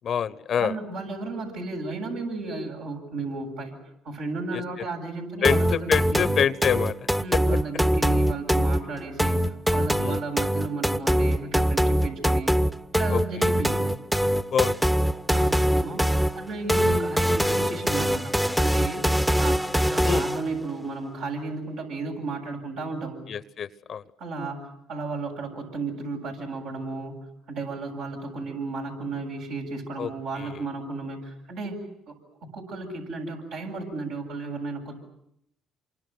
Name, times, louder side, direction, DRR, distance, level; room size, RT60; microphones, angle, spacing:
voice 1, 0.0-0.8 4.5-4.6 5.4-6.9 10.0-10.2 13.1-13.5 14.5-14.7 20.0-20.3 23.3-24.0 30.0-30.6, left 8 dB, 55° left, 17 dB, 1.0 m, -26 dB
voice 2, 0.6-3.8 4.0-6.3 7.2-12.5 12.9-13.8 15.3-16.0 16.4-19.0 19.4-23.2 24.2-32.2 32.5-35.0, right 3 dB, 75° right, 0 dB, 7.9 m, -34 dB
sound 1, 5.4-20.5, equal, 5° right, 1.0 m, -23 dB
27.5 x 24.5 x 7.9 m, 0.76 s
supercardioid pair, 70°, 0 cm